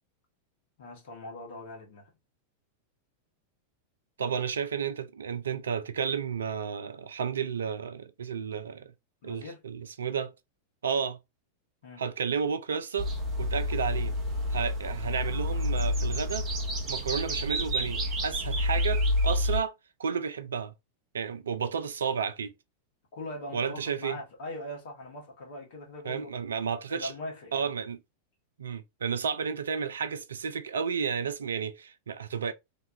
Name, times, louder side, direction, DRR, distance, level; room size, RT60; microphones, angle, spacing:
voice 1, 0.8-2.1 9.2-9.6 11.8-12.0 23.1-26.3 26.9-27.7, left 1 dB, 55° left, 1.3 m, -41 dB
voice 2, 4.2-8.9 9.2-10.3 10.8-11.2 12.0-13.1 13.4-14.1 14.5-16.5 16.9-19.7 20.0-20.7 21.1-22.5 23.5-24.2 26.1-27.1 27.5-28.0 28.6-32.5, right 6 dB, 70° right, 0.4 m, -32 dB
sound 1, 13.0-19.6, left 1 dB, 30° right, 0.8 m, -29 dB
3.4 x 2.2 x 2.7 m
figure-of-eight pair, 90°, 0 cm